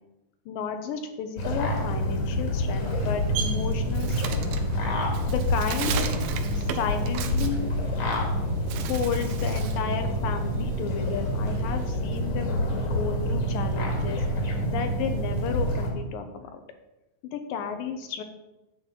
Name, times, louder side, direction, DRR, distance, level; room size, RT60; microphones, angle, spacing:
voice 1, 0.5-4.5 5.3-6.1 6.6-7.7 8.8-12.6 12.9-14.2 14.7-16.6 17.2-18.2, left 7 dB, 80° left, 7 dB, 2.7 m, -32 dB
sound 1, 1.4-15.9, equal, 60° left, 3.3 m, -27 dB
Bird, 2.8-8.3 8.6-9.9 10.2-12.0, right 8 dB, 85° right, 2.6 m, -36 dB
11.0 x 4.6 x 7.5 m, 0.97 s
omnidirectional pair, 4.0 m